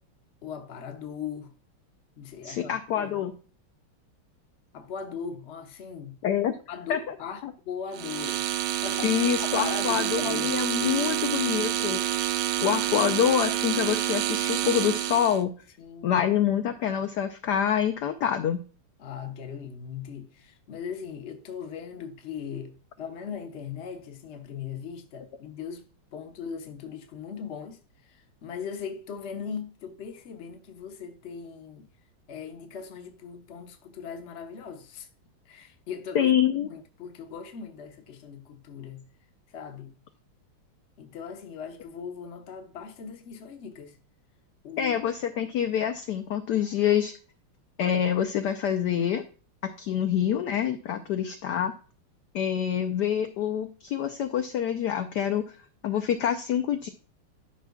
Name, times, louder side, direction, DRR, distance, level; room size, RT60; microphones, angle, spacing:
voice 1, 0.4-1.5 2.2-3.3 4.7-6.2 6.7-8.4 8.8-11.1 15.8-16.2 19.0-25.9 26.1-31.9 32.3-35.1 35.4-36.3 36.6-39.1 39.5-39.9 41.0-44.0 44.6-44.9 50.9-51.3, left 7 dB, 50° left, 0.8 m, -39 dB
voice 2, 2.4-3.3 6.2-6.5 6.9-7.2 7.4-7.5 9.0-12.0 12.6-15.5 16.0-18.6 36.1-36.7 44.8-47.1 47.8-49.2 49.6-51.7 52.3-55.6 55.8-56.9, left 9 dB, 75° left, 1.0 m, -26 dB
sound 1, 7.9-15.4, right 12 dB, 70° right, 1.0 m, -28 dB
12.0 x 5.7 x 2.3 m
omnidirectional pair, 2.3 m